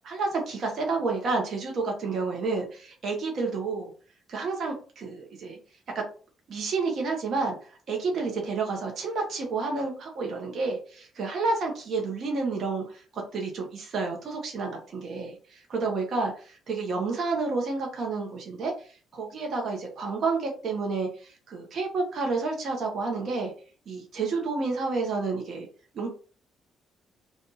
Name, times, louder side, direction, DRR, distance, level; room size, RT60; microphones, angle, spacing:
voice 1, 0.0-3.9 4.3-5.6 5.9-6.0 6.5-18.9 19.1-23.5 23.9-25.7 25.9-26.1, right 3 dB, 60° right, 1 dB, 1.2 m, -30 dB
3.4 x 2.7 x 4.0 m, 0.39 s
cardioid pair, 90°, 0 cm